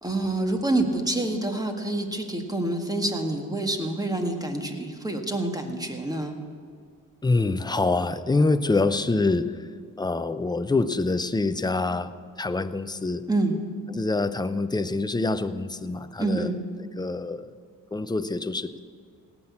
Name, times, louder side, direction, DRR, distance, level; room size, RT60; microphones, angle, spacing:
voice 1, 0.0-6.3 13.3-13.6 16.2-16.6, right 2 dB, 10° right, 4 dB, 1.8 m, -27 dB
voice 2, 7.2-9.6 10.0-12.1 12.4-13.3 13.9-16.5 17.0-17.5 17.9-18.8, left 3 dB, 10° left, 12 dB, 0.6 m, -25 dB
17.0 x 6.2 x 8.6 m, 2.1 s
cardioid pair, 60°, 35 cm